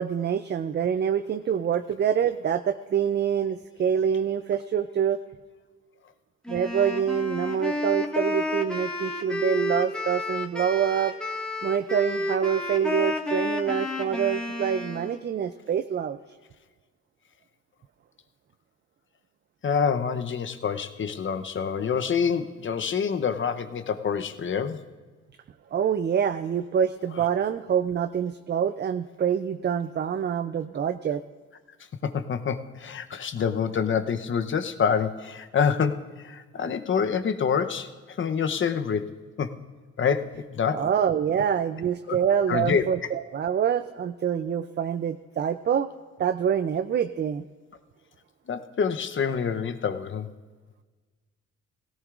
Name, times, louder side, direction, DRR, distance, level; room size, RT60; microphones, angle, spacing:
voice 1, 0.0-5.2 6.5-11.1 11.6-16.2 25.7-31.2 40.7-45.9 46.2-47.4, right 8 dB, 35° right, 10 dB, 0.4 m, -26 dB
Wind instrument woodwind instrument, 6.4-15.2, left 1 dB, 5° left, 1.6 m, -31 dB
voice 2, 19.6-24.8 32.0-39.5 40.0-40.9 42.1-42.2 42.5-43.1 48.5-50.3, left 6 dB, 40° left, 9 dB, 0.8 m, -27 dB
17.5 x 17.0 x 2.5 m, 1.4 s
cardioid pair, 90°, 30 cm